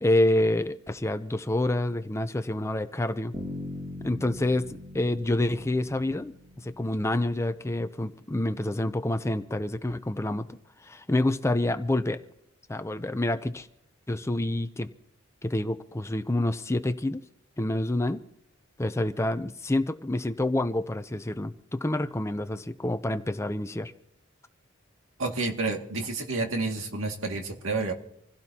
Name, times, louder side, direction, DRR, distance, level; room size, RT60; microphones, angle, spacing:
voice 1, 0.0-3.3 4.0-4.7 4.9-6.3 6.6-10.5 10.8-12.2 12.7-13.7 14.1-14.9 15.4-17.2 17.6-18.2 18.8-23.9, left 1 dB, 15° left, 10 dB, 0.5 m, -27 dB
Bass guitar, 3.3-7.3, left 1 dB, 20° right, 2.5 m, -41 dB
voice 2, 25.2-27.9, right 3 dB, 75° right, 3 dB, 2.1 m, -29 dB
26.5 x 16.5 x 2.8 m, 0.76 s
head